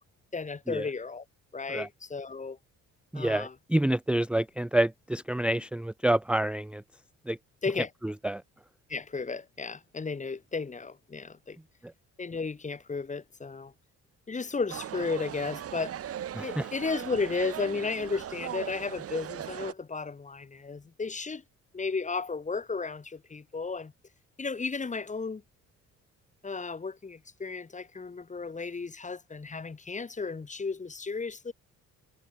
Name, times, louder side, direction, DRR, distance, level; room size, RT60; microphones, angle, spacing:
voice 1, 0.3-1.2 1.5-2.6 3.1-3.5 7.6-7.9 8.9-11.6 12.2-13.7 14.3-15.9 16.4-21.4 21.7-23.9 24.4-25.4 26.4-31.5, left 4 dB, 25° left, 1.5 m, -34 dB
voice 2, 3.1-6.8 7.3-7.4 8.0-8.4 11.8-11.9 16.3-16.7, right 1 dB, 5° right, 0.6 m, -28 dB
sound 1, 14.7-19.7, right 10 dB, 50° right, 0.8 m, -38 dB
cardioid pair, 90°, 30 cm